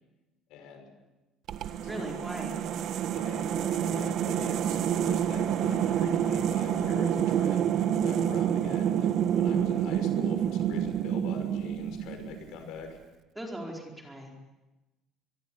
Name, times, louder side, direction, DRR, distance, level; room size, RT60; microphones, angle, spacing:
voice 1, 0.5-0.9 1.9-2.0 3.1-13.0, left 5 dB, 70° left, 6 dB, 6.1 m, -43 dB
sound 1, 1.5-12.6, right 9 dB, 50° right, 1.5 m, -28 dB
voice 2, 1.8-2.6 13.3-14.4, right 1 dB, 5° right, 0 dB, 4.5 m, -38 dB
24.0 x 23.5 x 8.8 m, 1.1 s
cardioid pair, 175°, 0 cm